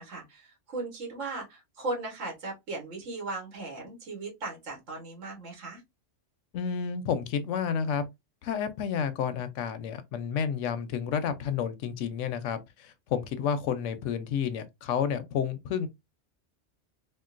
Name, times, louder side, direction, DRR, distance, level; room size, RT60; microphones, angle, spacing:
voice 1, 0.0-5.8, right 3 dB, 85° right, 1.6 m, -37 dB
voice 2, 6.5-8.1 8.4-15.9, left 7 dB, 85° left, 0.9 m, -30 dB
3.7 x 2.3 x 2.4 m
omnidirectional pair, 1.3 m